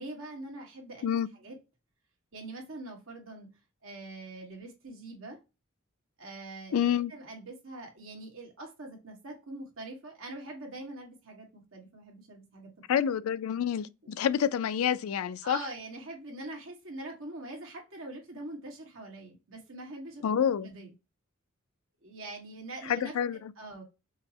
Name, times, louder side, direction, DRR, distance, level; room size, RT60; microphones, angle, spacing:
voice 1, 0.0-1.1 1.4-1.6 2.3-3.5 3.8-5.4 6.2-6.7 7.1-12.7 14.0-14.1 15.4-20.2 20.6-20.9 22.0-23.2 23.6-23.8, right 2 dB, 80° right, 1.4 m, -43 dB
voice 2, 6.7-7.1 12.9-15.6 20.2-20.7 22.9-23.5, left 8 dB, 90° left, 0.4 m, -28 dB
5.5 x 2.0 x 2.7 m
head